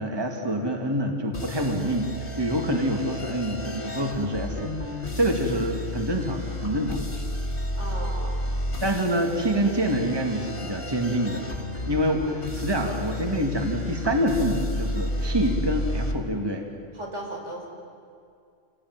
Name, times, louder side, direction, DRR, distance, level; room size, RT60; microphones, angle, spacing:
voice 1, 0.0-4.7 5.2-7.2 8.8-11.5 11.9-16.7, equal, 20° right, 2 dB, 2.2 m, -26 dB
sound 1, 1.3-16.1, left 1 dB, 50° left, 2.2 m, -32 dB
voice 2, 7.8-8.6 16.9-17.7, right 1 dB, 80° right, -1 dB, 5.1 m, -36 dB
27.5 x 19.0 x 9.5 m, 2.3 s
omnidirectional pair, 1.2 m